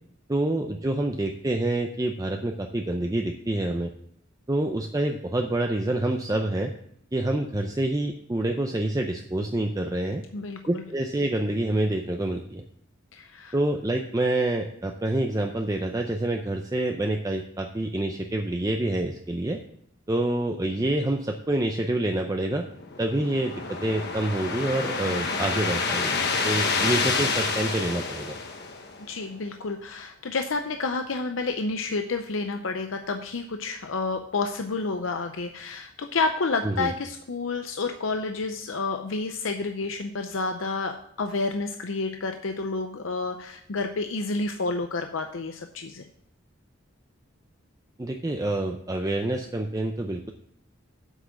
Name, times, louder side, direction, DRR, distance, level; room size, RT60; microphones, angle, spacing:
voice 1, 0.3-3.9 4.5-6.7 7.1-10.2 10.7-12.6 13.5-19.6 20.1-22.6 23.0-26.2 26.4-28.3 36.6-36.9 48.0-50.3, right 1 dB, 20° right, 3 dB, 0.5 m, -27 dB
voice 2, 10.3-10.8 13.1-13.5 29.1-46.1, left 3 dB, 80° left, 6 dB, 0.7 m, -30 dB
sound 1, 22.6-29.2, left 4 dB, 55° left, 1.2 m, -28 dB
8.1 x 6.1 x 7.1 m, 0.71 s
head